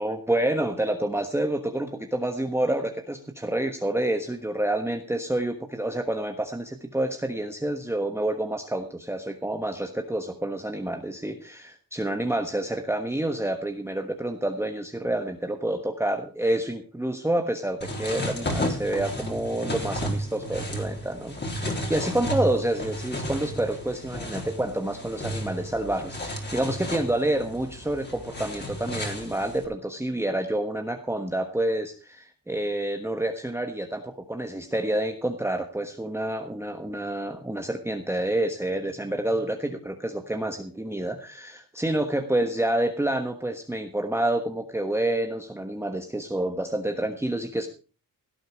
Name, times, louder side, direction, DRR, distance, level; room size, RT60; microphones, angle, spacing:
voice 1, 0.0-47.7, right 1 dB, 5° right, 4 dB, 1.3 m, -28 dB
sound 1, 17.8-29.6, equal, 30° left, 3.8 m, -33 dB
17.0 x 7.9 x 5.2 m, 0.37 s
wide cardioid pair, 135°, 34 cm